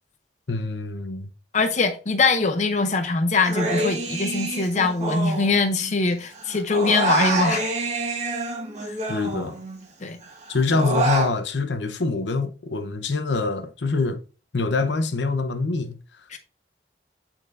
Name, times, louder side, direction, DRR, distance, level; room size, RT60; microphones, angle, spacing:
voice 1, 0.5-1.3 9.1-9.6 10.5-14.2 14.5-15.9, left 3 dB, 85° left, 0.8 m, -25 dB
voice 2, 1.5-7.7 8.8-8.9 10.0-10.2 16.3-16.4, left 3 dB, 45° left, 0.7 m, -22 dB
Human voice, 3.4-6.1 6.3-9.8 10.2-11.3, right 2 dB, 40° right, 1.5 m, -27 dB
8.5 x 4.4 x 2.6 m
head